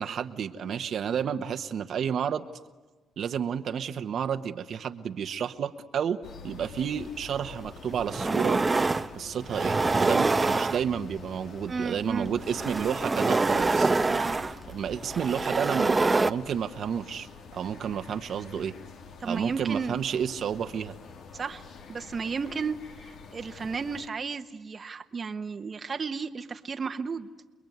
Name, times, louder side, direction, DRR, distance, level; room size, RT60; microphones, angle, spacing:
voice 1, 0.0-2.5 3.2-8.6 9.1-13.9 14.7-17.3 17.5-18.7 19.2-20.9, right 8 dB, 65° right, 8 dB, 1.2 m, -31 dB
sound 1, 6.2-24.1, left 5 dB, 70° left, 2.3 m, -47 dB
sound 2, 7.4-7.5 7.9-9.1 9.5-11.2 12.3-16.3, right 3 dB, 25° right, 0.9 m, -25 dB
voice 2, 11.7-12.3 14.1-14.4 19.2-20.0 21.3-21.6 21.9-27.3, right 5 dB, 40° right, 8 dB, 1.2 m, -33 dB
29.0 x 21.5 x 9.4 m, 1.3 s
cardioid pair, 90°, 0 cm